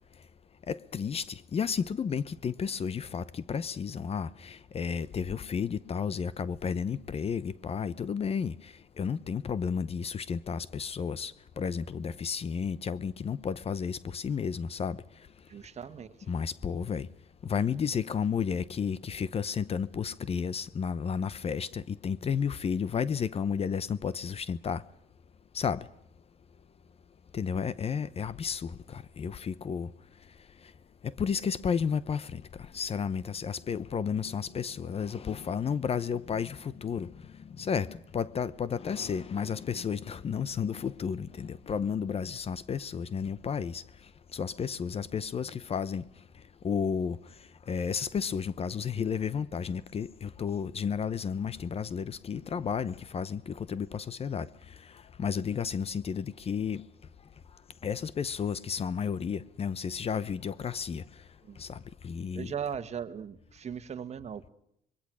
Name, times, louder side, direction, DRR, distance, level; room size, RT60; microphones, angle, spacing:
voice 1, 0.7-8.5 9.0-15.0 16.3-17.1 17.5-24.8 25.5-25.8 27.3-29.9 31.2-32.4 32.7-37.1 37.6-43.8 44.3-46.0 46.6-47.2 47.7-54.5 55.2-56.8 57.8-61.0 61.6-61.8 62.0-62.5, left 6 dB, 35° left, 0.8 m, -32 dB
voice 2, 15.5-16.3 33.9-34.0 52.5-52.6 61.4-61.6 62.3-64.5, right 7 dB, 40° right, 1.7 m, -39 dB
26.0 x 22.5 x 6.2 m
cardioid pair, 110°, 17 cm